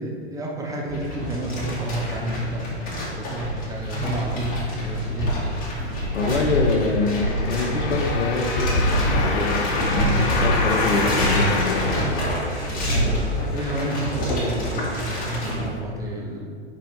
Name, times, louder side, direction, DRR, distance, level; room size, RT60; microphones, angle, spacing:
voice 1, 0.0-2.7 3.1-5.4 12.8-16.5, right 1 dB, 10° right, -2 dB, 0.9 m, -30 dB
sound 1, 0.9-15.7, equal, 25° left, 1.6 m, -26 dB
voice 2, 6.1-10.0 10.3-12.0, left 3 dB, 75° left, 3 dB, 1.0 m, -25 dB
sound 2, 7.0-12.9 13.5-13.6, left 3 dB, 45° left, 0.9 m, -28 dB
5.1 x 4.8 x 4.5 m, 2.1 s
figure-of-eight pair, 110°, 34 cm